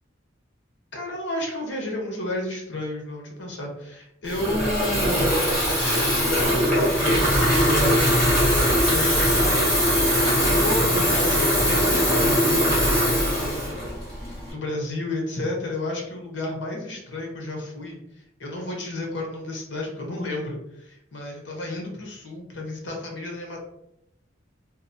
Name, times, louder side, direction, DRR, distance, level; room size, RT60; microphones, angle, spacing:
voice 1, 0.9-5.3 5.9-8.1 8.8-9.7 10.4-18.0 18.4-23.6, left 1 dB, 70° left, 0 dB, 0.8 m, -32 dB
Water tap faucet / Fill (with liquid), 4.3-14.5, equal, 5° left, 1.2 m, -21 dB
2.8 x 2.1 x 2.5 m, 0.81 s
head